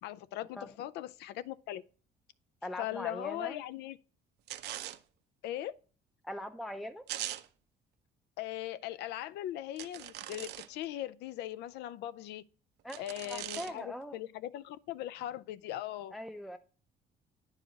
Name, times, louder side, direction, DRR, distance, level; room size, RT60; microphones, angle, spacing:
voice 1, 0.0-1.8 2.8-4.0 5.4-5.7 8.4-12.4 13.0-16.1, left 13 dB, 80° left, 0.5 m, -39 dB
voice 2, 2.6-3.6 6.2-7.1 12.8-14.2 16.1-16.6, equal, ahead, 0.5 m, -41 dB
sound 1, 4.5-5.0 7.1-7.5 9.8-10.8 12.9-13.8, right 13 dB, 75° right, 0.6 m, -41 dB
9.9 x 4.9 x 3.9 m
cardioid pair, 110°, 17 cm